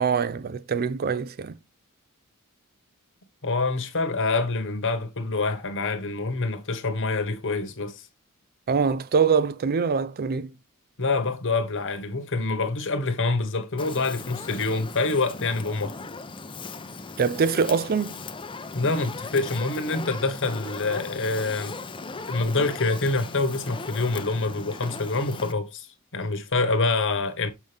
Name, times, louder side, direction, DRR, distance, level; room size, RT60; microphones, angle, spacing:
voice 1, 0.0-1.5 8.7-10.5 17.2-18.2, right 6 dB, 45° right, 0.4 m, -24 dB
voice 2, 3.4-8.1 11.0-15.9 18.7-21.7 22.3-25.9 26.1-27.5, left 3 dB, 60° left, 1.4 m, -26 dB
Fire, 13.8-25.5, left 3 dB, 20° left, 0.6 m, -38 dB
7.4 x 5.2 x 3.4 m
head